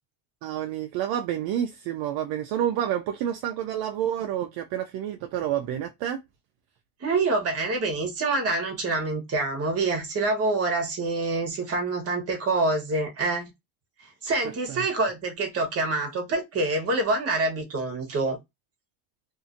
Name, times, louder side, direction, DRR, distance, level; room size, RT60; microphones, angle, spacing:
voice 1, 0.4-6.2 14.7-14.9, right 10 dB, 60° right, 0.5 m, -29 dB
voice 2, 7.0-13.5 14.2-18.4, right 3 dB, 35° right, 1.2 m, -26 dB
2.7 x 2.5 x 2.5 m
cardioid pair, 125°, 41 cm